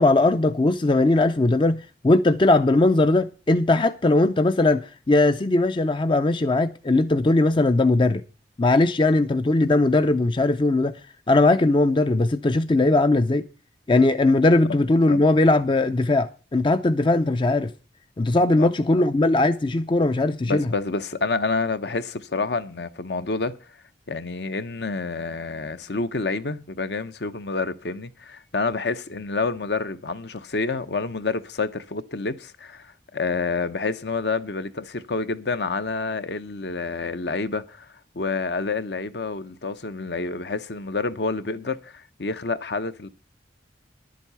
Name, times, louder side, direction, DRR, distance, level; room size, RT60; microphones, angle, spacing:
voice 1, 0.0-8.2 8.6-11.0 11.3-13.5 13.9-17.7 18.2-20.7, left 2 dB, 25° left, 0.5 m, -19 dB
voice 2, 18.6-19.1 20.5-23.5 24.1-37.9 38.1-43.1, left 3 dB, 65° left, 0.9 m, -28 dB
11.0 x 7.6 x 6.9 m
head